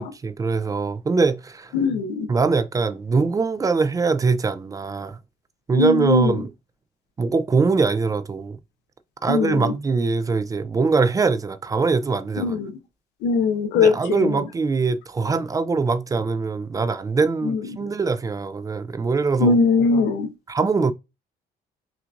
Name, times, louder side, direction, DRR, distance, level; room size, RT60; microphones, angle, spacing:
voice 1, 0.0-1.7 2.3-5.2 5.7-6.5 7.2-8.6 9.2-12.5 13.8-19.6 20.5-20.9, right 4 dB, 20° right, 0.3 m, -22 dB
voice 2, 1.7-2.3 5.7-6.3 9.3-9.7 12.4-12.7 13.2-14.3 17.4-17.6 19.4-20.3, left 4 dB, 85° left, 0.8 m, -20 dB
5.8 x 2.5 x 2.5 m
cardioid pair, 110°, 17 cm